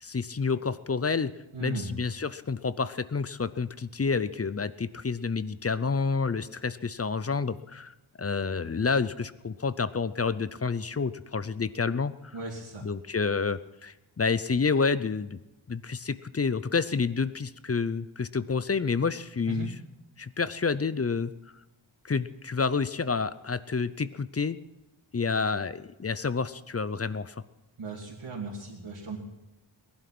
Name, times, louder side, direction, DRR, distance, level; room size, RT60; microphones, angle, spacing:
voice 1, 0.0-1.3 1.6-12.3 12.8-15.4 15.7-19.7 20.2-21.3 22.0-24.6 25.1-27.4, left 5 dB, 30° left, 15 dB, 0.6 m, -29 dB
voice 2, 1.5-1.9 12.3-12.8 19.5-19.7 27.8-29.2, right 4 dB, 85° right, -6 dB, 2.9 m, -37 dB
19.5 x 11.5 x 6.1 m, 1.0 s
wide cardioid pair, 100°, 49 cm